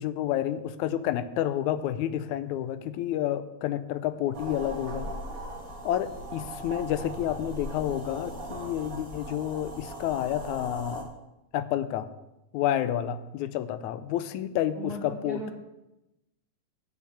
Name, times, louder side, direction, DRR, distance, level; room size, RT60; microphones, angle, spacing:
voice 1, 0.0-5.1 5.9-11.1 11.5-12.1 12.5-15.4, left 11 dB, 80° left, 13 dB, 1.9 m, -30 dB
sound 1, 4.3-11.0, right 1 dB, 35° right, 1.5 m, -39 dB
voice 2, 14.8-15.6, right 1 dB, 65° right, 1 dB, 0.9 m, -37 dB
10.5 x 6.0 x 8.4 m, 0.94 s
omnidirectional pair, 3.4 m